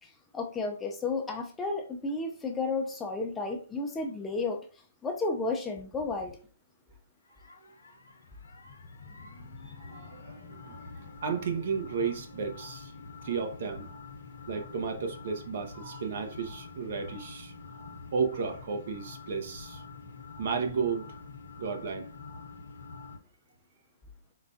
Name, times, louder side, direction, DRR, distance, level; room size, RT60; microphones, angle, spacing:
voice 1, 0.0-4.6 5.0-6.4, left 3 dB, 10° left, 0.4 m, -32 dB
sound 1, 7.3-23.2, left 4 dB, 80° left, 0.9 m, -46 dB
voice 2, 9.8-12.9 13.2-13.9 14.5-17.5 18.1-19.8 20.4-21.1 21.6-22.1, right 5 dB, 55° right, 0.7 m, -33 dB
4.8 x 2.2 x 2.6 m
hypercardioid pair, 165°, 0 cm